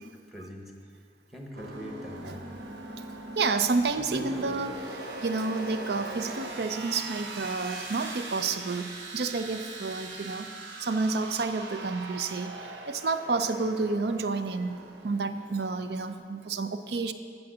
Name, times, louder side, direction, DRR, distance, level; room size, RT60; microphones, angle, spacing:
voice 1, 0.1-0.6 1.3-2.6 3.9-4.6, equal, ahead, 1 dB, 1.0 m, -42 dB
sound 1, 1.5-16.1, right 2 dB, 80° right, 0.9 m, -41 dB
voice 2, 3.4-4.8 5.2-10.5 10.8-14.8 15.0-17.1, right 4 dB, 60° right, 10 dB, 0.5 m, -30 dB
8.7 x 7.5 x 6.2 m, 2.2 s
head